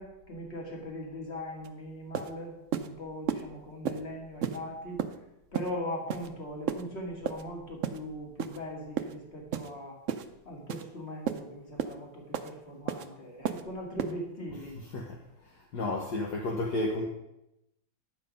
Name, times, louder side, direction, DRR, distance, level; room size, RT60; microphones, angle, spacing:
voice 1, 0.0-5.0 5.5-10.0 10.5-14.8, left 1 dB, 35° left, 0 dB, 2.4 m, -40 dB
sound 1, 1.6-1.7 2.1-2.3 2.7-2.9 3.3-3.4 3.9-4.0 4.4-4.6 5.0-5.2 5.5-5.7 6.1-6.3 6.7-6.8 7.3-7.4 7.8-8.0 8.4-8.6 9.0-9.1 9.5-9.7 10.1-10.3 10.7-10.8 11.3-11.4 11.8-11.9 12.3-12.5 12.9-13.1 13.4-13.6 14.0-14.1, right 9 dB, 70° right, 0.7 m, -32 dB
voice 2, 15.7-17.0, left 2 dB, 60° left, -1 dB, 1.7 m, -31 dB
10.5 x 7.7 x 5.3 m, 0.89 s
omnidirectional pair, 2.1 m